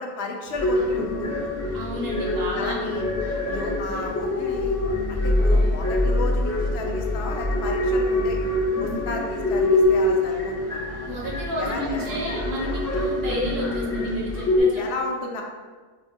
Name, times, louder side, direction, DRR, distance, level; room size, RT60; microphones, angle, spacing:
voice 1, 0.0-1.5 2.6-3.0 3.5-4.7 5.1-8.4 8.8-11.1 11.6-12.3 14.7-15.4, left 2 dB, 85° left, 1 dB, 0.8 m, -33 dB
sound 1, 0.6-14.6, left 1 dB, 25° left, 0.3 m, -24 dB
voice 2, 1.7-2.8 11.0-14.8, equal, 70° right, -3 dB, 1.0 m, -31 dB
4.5 x 2.1 x 2.6 m, 1.4 s
omnidirectional pair, 1.1 m